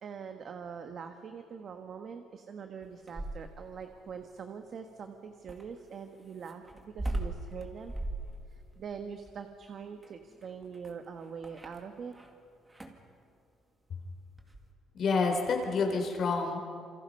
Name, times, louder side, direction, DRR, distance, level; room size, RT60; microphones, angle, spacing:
voice 1, 0.0-7.9 8.5-12.1, right 6 dB, 45° right, 6 dB, 1.3 m, -43 dB
sound 1, 2.8-3.7 5.5-12.3 12.7-13.1 14.4-14.7, right 1 dB, 15° right, 2.2 m, -39 dB
voice 2, 14.9-16.6, left 4 dB, 45° left, 3 dB, 4.1 m, -28 dB
29.0 x 27.5 x 5.5 m, 2.4 s
cardioid pair, 155°, 0 cm